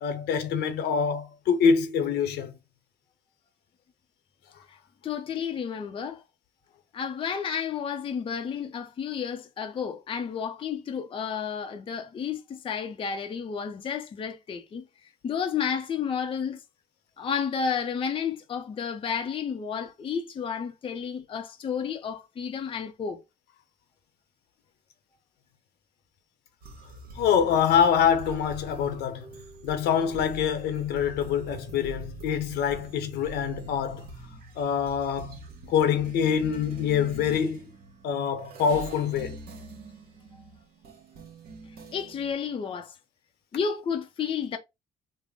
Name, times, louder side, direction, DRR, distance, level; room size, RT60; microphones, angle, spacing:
voice 1, 0.0-2.5 27.2-29.3 29.6-34.1 34.6-35.4 35.7-37.7 38.0-39.4, left 7 dB, 75° left, 0.8 m, -25 dB
voice 2, 5.0-6.2 6.9-14.8 15.2-16.6 17.2-23.2 41.9-43.0 43.5-44.6, left 7 dB, 30° left, 0.5 m, -31 dB
sound 1, 26.6-42.3, right 3 dB, 60° right, 1.2 m, -44 dB
3.5 x 2.1 x 3.5 m
cardioid pair, 110°, 17 cm